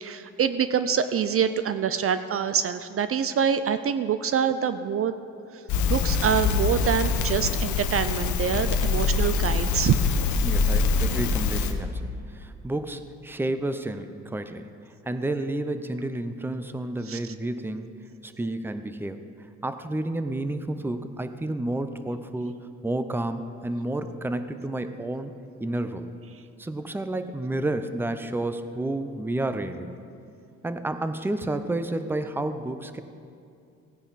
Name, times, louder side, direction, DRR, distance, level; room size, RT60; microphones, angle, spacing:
voice 1, 0.0-5.1 5.9-9.9 17.1-17.2, right 8 dB, 50° right, 11 dB, 0.5 m, -25 dB
Crackle, 5.7-11.7, left 4 dB, 75° left, 0.9 m, -24 dB
voice 2, 10.4-14.7 15.1-19.2 19.6-25.3 25.6-26.1 26.6-30.0 30.6-33.0, right 2 dB, 5° right, 10 dB, 0.6 m, -30 dB
17.0 x 9.8 x 4.1 m, 2.4 s
cardioid pair, 90°, 30 cm